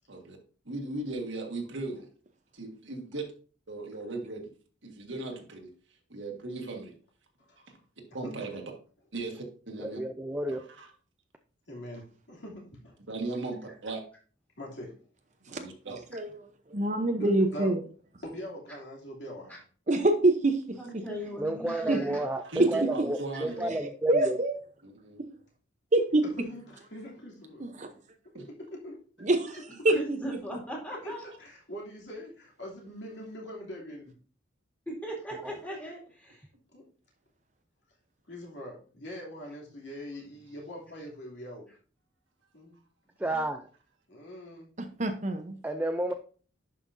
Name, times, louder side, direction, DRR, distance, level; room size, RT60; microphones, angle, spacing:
voice 1, 0.7-2.1 2.5-3.3 3.7-4.5 4.8-5.7 6.1-6.9 7.6-7.7 8.1-8.6 9.1-10.0 10.5-10.9 13.1-14.0 15.5-16.0 22.4-23.7 24.8-25.2 28.3-28.5, right 2 dB, 70° right, 2 dB, 1.7 m, -37 dB
voice 2, 9.8-10.6 21.4-24.4 43.2-43.7 45.6-46.1, right 1 dB, 10° right, 6 dB, 0.4 m, -31 dB
voice 3, 11.7-13.0 14.6-14.9 17.2-17.7 18.2-19.6 26.4-27.6 28.7-29.0 31.0-31.1 31.4-34.1 36.7-36.9 38.3-41.6 42.5-42.7 44.1-44.7, equal, 60° left, -2 dB, 2.9 m, -43 dB
voice 4, 15.9-16.3 16.7-17.8 19.9-20.8 21.9-22.0 23.7-23.8 24.1-24.5 25.9-26.2 27.6-27.9 29.2-29.6 29.8-29.9 44.8-45.6, right 2 dB, 35° right, 6 dB, 0.8 m, -25 dB
voice 5, 20.8-22.2 23.4-23.5 29.9-31.3 34.9-36.5 43.2-43.5, right 1 dB, 10° left, -3 dB, 2.5 m, -38 dB
11.0 x 5.7 x 2.7 m, 0.41 s
head